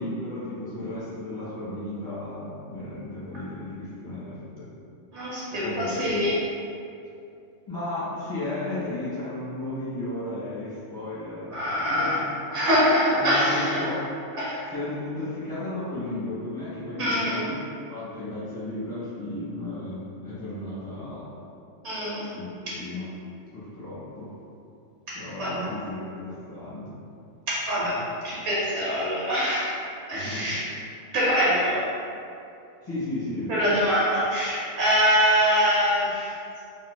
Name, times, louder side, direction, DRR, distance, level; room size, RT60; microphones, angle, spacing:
voice 1, 0.0-4.7 5.5-6.1 7.7-12.3 13.1-14.0 14.7-17.5 17.9-21.3 22.3-23.1 23.5-24.3 25.1-27.0 30.1-30.6 32.8-33.5, left 1 dB, 20° left, -13 dB, 1.5 m, -34 dB
voice 2, 5.1-6.4 11.5-12.2 12.5-13.8 14.4-14.6 17.0-17.5 21.8-22.3 22.7-22.8 25.4-25.6 27.5-28.0 28.2-29.7 30.1-30.7 31.1-31.9 33.5-36.3, equal, 65° right, -8 dB, 1.1 m, -24 dB
4.1 x 2.7 x 2.2 m, 2.6 s
omnidirectional pair, 1.3 m